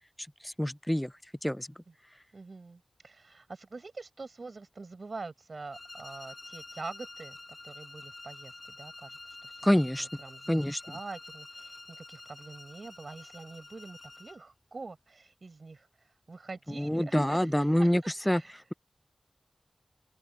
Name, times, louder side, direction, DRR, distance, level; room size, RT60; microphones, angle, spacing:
voice 1, 0.4-1.1 1.4-1.7 9.6-10.1 10.5-10.8 16.8-18.4, equal, 10° left, 0.4 m, -26 dB
voice 2, 2.3-7.4 7.6-9.7 10.0-18.5, right 3 dB, 65° right, 7.0 m, -45 dB
sound 1, 5.7-14.4, left 2 dB, 50° left, 4.9 m, -48 dB
wide cardioid pair, 55°, 0 cm